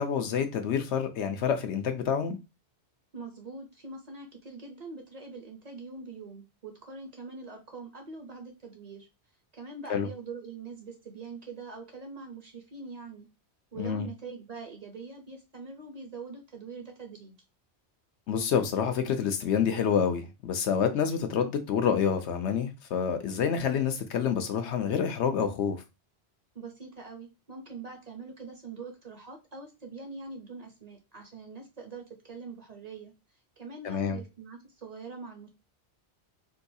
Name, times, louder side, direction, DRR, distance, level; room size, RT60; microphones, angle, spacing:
voice 1, 0.0-2.4 9.9-10.1 13.8-14.1 18.3-25.8 33.8-34.2, left 7 dB, 85° left, 0.9 m, -28 dB
voice 2, 3.1-9.1 9.5-13.3 13.7-17.4 26.5-33.1 33.6-35.5, right 4 dB, 45° right, 0.7 m, -43 dB
3.8 x 2.3 x 2.6 m
omnidirectional pair, 1.1 m